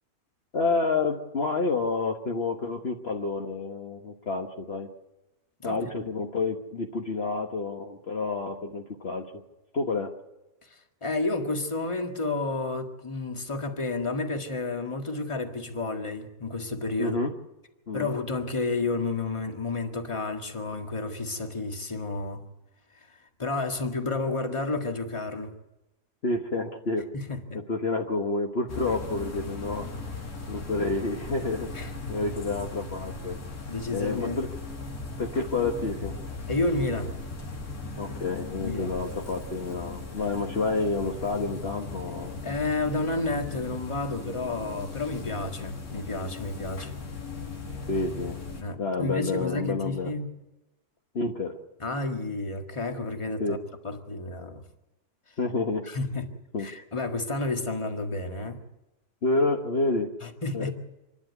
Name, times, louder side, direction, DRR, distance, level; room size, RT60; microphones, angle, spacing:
voice 1, 0.5-4.9 5.6-9.4 9.7-10.1 17.0-17.3 17.9-18.1 26.2-27.0 27.5-29.9 30.5-31.7 32.1-33.4 33.9-34.5 35.2-36.2 38.0-42.4 47.9-48.4 48.8-50.1 51.1-51.6 53.4-53.6 55.4-55.8 56.5-56.7 59.2-60.1 60.5-60.7, left 3 dB, 45° left, 1 dB, 1.5 m, -29 dB
voice 2, 10.7-17.2 17.9-22.4 23.1-25.5 27.1-27.6 31.7-32.3 33.7-34.4 36.5-37.2 38.6-38.9 42.4-46.9 48.6-50.3 51.8-53.6 53.8-54.6 55.9-56.3 56.6-58.6 60.2-60.7, left 2 dB, 20° left, 4 dB, 1.8 m, -31 dB
sound 1, 28.7-48.6, left 3 dB, 70° left, 2.8 m, -38 dB
27.0 x 11.5 x 9.4 m, 1.0 s
omnidirectional pair, 1.6 m